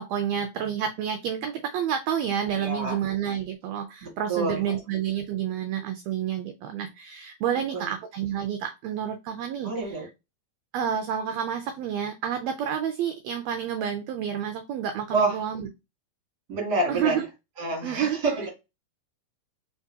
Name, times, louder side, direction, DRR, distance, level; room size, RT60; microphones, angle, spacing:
voice 1, 0.0-10.1 10.7-15.7 16.9-17.3 17.8-18.2, right 9 dB, 80° right, 6 dB, 1.7 m, -29 dB
voice 2, 2.6-3.0 4.0-4.8 7.7-7.9 9.6-10.1 15.1-15.4 16.5-17.2 17.6-18.5, right 3 dB, 35° right, 0 dB, 2.2 m, -28 dB
4.4 x 3.6 x 2.7 m, 0.25 s
omnidirectional pair, 3.4 m